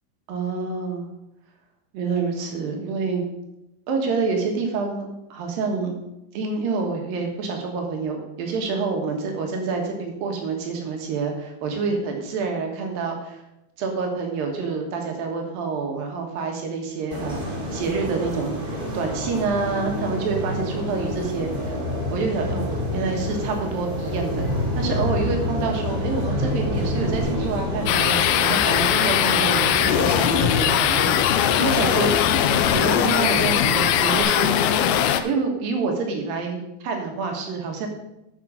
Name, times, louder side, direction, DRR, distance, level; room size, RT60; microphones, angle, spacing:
voice 1, 0.3-1.1 1.9-3.2 3.9-5.9 6.3-13.4 13.8-21.8 22.1-24.5 24.8-32.1 32.7-34.5 35.2-37.9, right 4 dB, 65° right, 2 dB, 3.1 m, -27 dB
sound 1, 17.1-34.2, left 1 dB, 30° right, 1.9 m, -28 dB
sound 2, 27.9-35.2, left 10 dB, 80° left, 2.3 m, -20 dB
12.5 x 5.5 x 5.0 m, 0.89 s
omnidirectional pair, 4.7 m